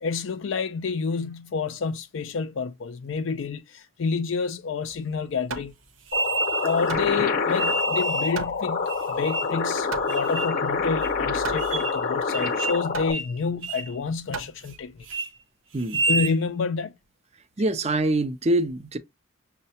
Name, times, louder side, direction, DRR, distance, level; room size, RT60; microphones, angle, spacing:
voice 1, 0.0-5.7 6.6-14.9 15.9-17.0, left 5 dB, 65° left, 0.4 m, -29 dB
Hammer, 4.9-15.1, right 4 dB, 85° right, 0.9 m, -39 dB
sound 1, 6.1-13.1, left 4 dB, 45° left, 0.8 m, -27 dB
sound 2, 6.1-6.9 7.6-8.4 8.9-9.6 10.1-10.6 11.0-11.1 11.6-12.0 12.3-12.8 13.1-13.3 13.6-13.9 14.3-14.8 15.0-15.3 15.8-16.4, right 3 dB, 65° right, 0.8 m, -29 dB
voice 2, 17.6-19.0, right 2 dB, 30° right, 0.5 m, -24 dB
6.4 x 2.2 x 2.7 m
head